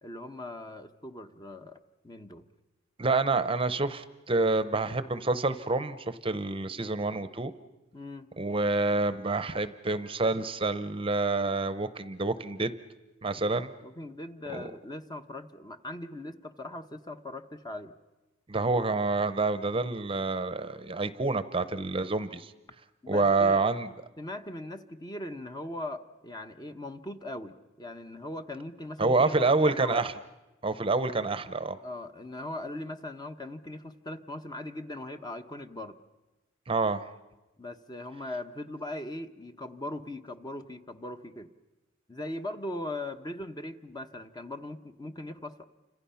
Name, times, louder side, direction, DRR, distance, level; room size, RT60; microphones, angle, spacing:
voice 1, 0.0-2.5 7.9-8.3 13.8-17.9 19.7-20.0 23.0-23.6 24.2-30.0 31.8-36.0 37.6-41.5 42.1-45.6, left 1 dB, 20° left, 8 dB, 0.9 m, -40 dB
voice 2, 3.0-7.5 8.4-12.7 13.2-13.7 14.5-14.7 18.5-22.5 23.1-23.9 29.0-30.1 30.6-31.8 36.7-37.0, right 3 dB, 25° right, 12 dB, 0.8 m, -27 dB
29.5 x 26.5 x 5.7 m, 1.1 s
head